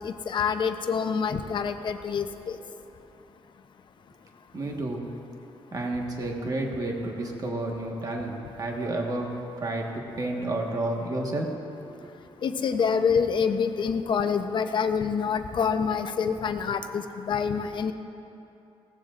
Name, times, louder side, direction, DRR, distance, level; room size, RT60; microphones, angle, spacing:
voice 1, 0.0-2.6 12.4-17.9, left 6 dB, 50° left, 7 dB, 0.7 m, -26 dB
voice 2, 4.5-5.1 5.7-9.3 9.6-11.5 11.9-12.1, right 2 dB, 35° right, 0 dB, 1.5 m, -31 dB
20.0 x 16.0 x 2.5 m, 2.9 s
wide cardioid pair, 145°, 10 cm